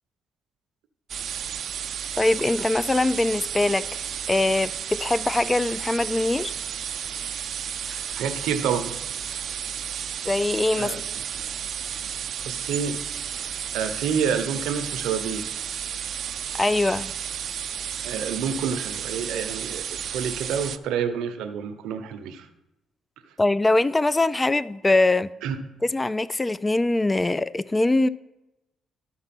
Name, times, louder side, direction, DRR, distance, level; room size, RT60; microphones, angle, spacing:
sound 1, 1.1-20.8, right 9 dB, 65° right, 0.4 m, -32 dB
voice 1, 2.2-6.5 7.9-8.0 10.3-10.9 16.6-17.1 23.4-25.3 25.8-28.1, left 2 dB, 20° left, 0.3 m, -22 dB
voice 2, 8.2-8.9 10.7-11.0 12.4-13.0 13.7-15.5 18.0-22.5 25.4-25.6, right 7 dB, 90° right, 0.8 m, -28 dB
12.5 x 4.4 x 5.9 m
cardioid pair, 90°, 0 cm